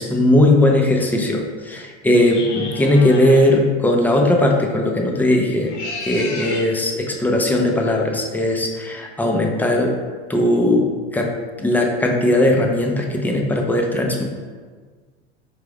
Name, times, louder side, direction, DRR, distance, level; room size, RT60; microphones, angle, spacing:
voice 1, 0.0-5.7 6.1-9.9 10.3-10.9 11.1-11.3 11.6-14.2, left 1 dB, 5° left, 1 dB, 0.5 m, -18 dB
sound 1, 2.2-3.5 5.5-6.7, left 3 dB, 75° left, 0.9 m, -32 dB
4.6 x 2.5 x 3.3 m, 1.5 s
hypercardioid pair, 85°, 35 cm